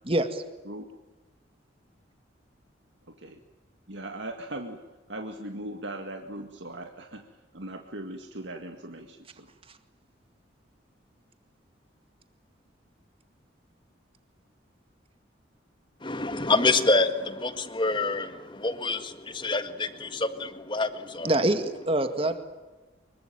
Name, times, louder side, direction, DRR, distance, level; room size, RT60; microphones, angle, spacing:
voice 1, 0.0-0.4 21.2-22.4, right 1 dB, 30° right, 8 dB, 2.0 m, -25 dB
voice 2, 3.9-4.8 5.1-7.3 7.5-9.5, right 1 dB, 75° right, 4 dB, 2.0 m, -39 dB
voice 3, 16.0-21.3, left 3 dB, 25° left, 9 dB, 1.7 m, -27 dB
25.0 x 23.0 x 9.0 m, 1.2 s
head